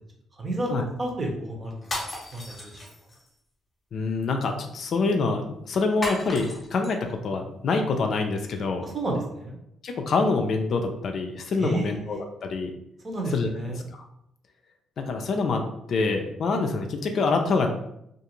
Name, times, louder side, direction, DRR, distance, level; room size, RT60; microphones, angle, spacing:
voice 1, 0.3-1.9 2.3-2.8 8.8-9.6 11.6-12.2 13.0-13.8, right 2 dB, 35° right, 0 dB, 0.8 m, -31 dB
sound 1, 1.8-3.3 6.0-6.9, left 1 dB, 30° left, 0.8 m, -34 dB
voice 2, 3.9-8.8 9.8-12.7 13.3-13.5 13.9-14.1 15.0-15.6 15.9-17.7, left 4 dB, 60° left, 4 dB, 0.4 m, -26 dB
2.5 x 2.4 x 2.9 m, 0.77 s
cardioid pair, 95°, 0 cm